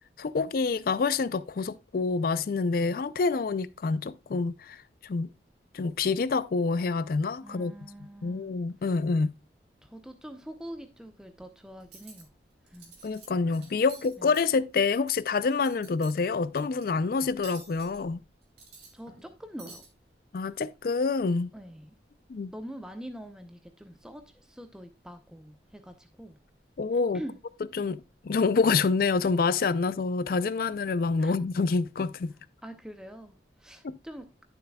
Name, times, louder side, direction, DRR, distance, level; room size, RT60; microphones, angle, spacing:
voice 1, 0.2-5.3 5.7-7.7 8.2-9.3 13.0-18.2 20.3-21.5 22.3-22.5 26.8-27.2 27.7-32.3 33.8-34.0, left 4 dB, 55° left, 0.4 m, -27 dB
voice 2, 7.4-8.5 9.8-12.3 12.7-12.9 14.2-14.3 18.9-19.8 21.5-21.9 22.5-26.4 27.1-27.4 27.8-27.9 31.2-31.3 32.6-34.4, equal, 5° right, 0.6 m, -44 dB
Cutlery silverware, 11.8-12.2 12.7-13.3 13.5-15.1 15.5-16.2 16.6-16.8 17.4-18.0 18.4-19.3 19.6-19.9, right 4 dB, 70° right, 2.8 m, -49 dB
11.5 x 6.8 x 2.2 m
head